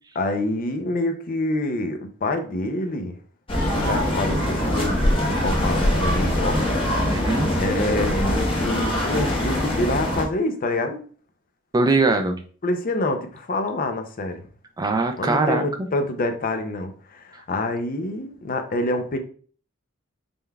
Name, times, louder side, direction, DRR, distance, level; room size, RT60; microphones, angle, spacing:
voice 1, 0.1-3.1 3.7-5.0 5.4-6.7 7.3-11.0 12.6-14.4 15.2-19.2, left 2 dB, 40° left, 7 dB, 0.5 m, -26 dB
sound 1, 3.5-10.3, equal, 25° left, 1.1 m, -23 dB
voice 2, 7.1-7.5 11.7-12.4 14.8-15.9, right 3 dB, 20° right, 5 dB, 0.4 m, -21 dB
5.3 x 3.4 x 2.3 m, 0.43 s
head